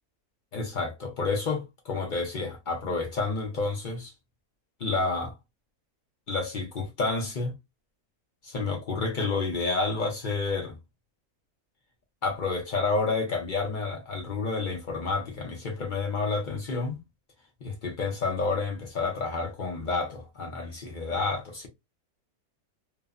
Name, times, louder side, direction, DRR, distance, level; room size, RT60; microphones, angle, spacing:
voice 1, 0.5-4.1 4.8-5.3 6.3-7.5 8.4-10.8 12.2-17.0 17.6-21.7, left 3 dB, 55° left, 0.5 m, -29 dB
3.0 x 2.1 x 2.3 m
omnidirectional pair, 1.6 m